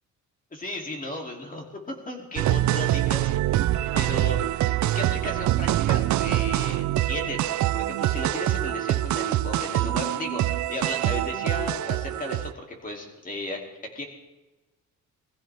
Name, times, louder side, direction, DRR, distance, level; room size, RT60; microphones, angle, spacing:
voice 1, 0.5-4.4 4.8-13.6 13.9-14.1, left 1 dB, 25° left, 1 dB, 2.9 m, -35 dB
sound 1, 2.4-12.5, right 14 dB, 65° right, 0.5 m, -25 dB
21.5 x 15.0 x 3.5 m, 1.1 s
cardioid pair, 125°, 31 cm